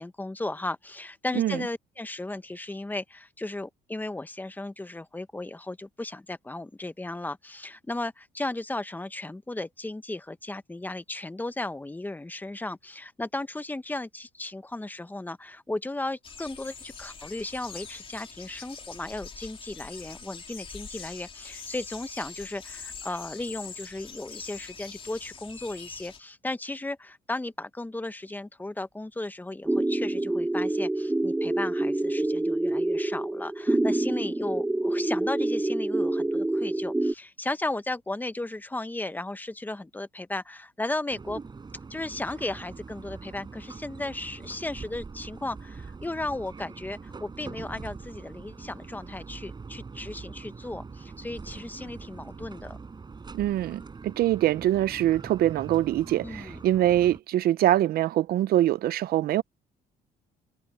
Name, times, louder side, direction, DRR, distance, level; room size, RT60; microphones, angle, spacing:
voice 1, 0.0-41.4 41.9-52.8 56.2-56.6, left 2 dB, 10° left, 1.1 m, -35 dB
sound 1, 16.2-26.2, left 5 dB, 30° left, 3.2 m, -44 dB
sound 2, 29.7-37.1, right 2 dB, 5° right, 0.6 m, -27 dB
sound 3, 41.1-57.2, right 4 dB, 25° right, 5.6 m, -43 dB
voice 2, 53.3-59.4, right 13 dB, 65° right, 0.6 m, -24 dB
cardioid pair, 110°, 17 cm